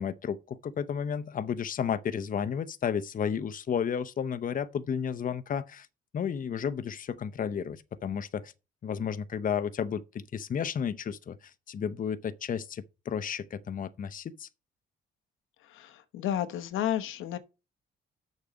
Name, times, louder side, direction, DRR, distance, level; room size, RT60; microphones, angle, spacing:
voice 1, 0.0-5.9 6.1-8.5 8.8-14.5, left 7 dB, 45° left, 0.7 m, -32 dB
voice 2, 15.6-17.4, left 11 dB, 90° left, 1.0 m, -32 dB
6.9 x 6.4 x 5.2 m
cardioid pair, 90°, 20 cm